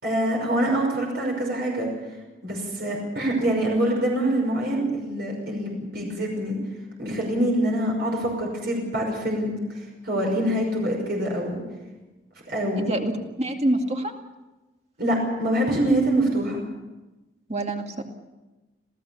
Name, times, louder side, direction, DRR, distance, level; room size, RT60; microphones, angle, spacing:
voice 1, 0.0-1.9 2.4-6.6 7.0-11.6 12.5-12.9 15.0-16.6, right 1 dB, 50° right, 0 dB, 5.7 m, -25 dB
voice 2, 12.8-14.1 17.5-18.0, right 1 dB, 35° right, 3 dB, 2.2 m, -26 dB
27.0 x 16.5 x 7.1 m, 1.1 s
head